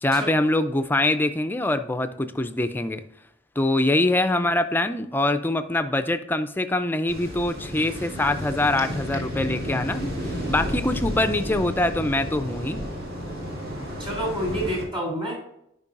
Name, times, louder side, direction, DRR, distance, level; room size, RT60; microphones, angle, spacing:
voice 1, 0.0-3.0 3.6-12.8, left 2 dB, 10° left, 10 dB, 0.4 m, -24 dB
sound 1, 7.1-14.8, equal, 50° right, 2.0 m, -32 dB
voice 2, 14.0-15.4, right 1 dB, 25° right, -1 dB, 2.9 m, -28 dB
10.5 x 5.3 x 2.5 m, 0.78 s
head